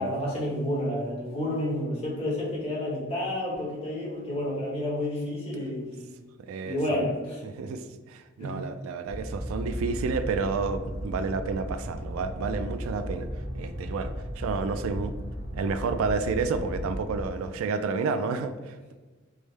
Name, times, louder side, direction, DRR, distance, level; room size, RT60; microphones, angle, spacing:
voice 1, 0.0-6.1 6.6-7.4 8.4-8.6, left 1 dB, 30° left, -5 dB, 1.1 m, -30 dB
voice 2, 6.5-7.1 7.4-13.3 13.5-15.1 15.5-18.9, right 4 dB, 80° right, 11 dB, 0.3 m, -30 dB
sound 1, 9.1-17.3, equal, 15° right, 0.6 m, -35 dB
4.8 x 2.1 x 3.2 m, 1.3 s
head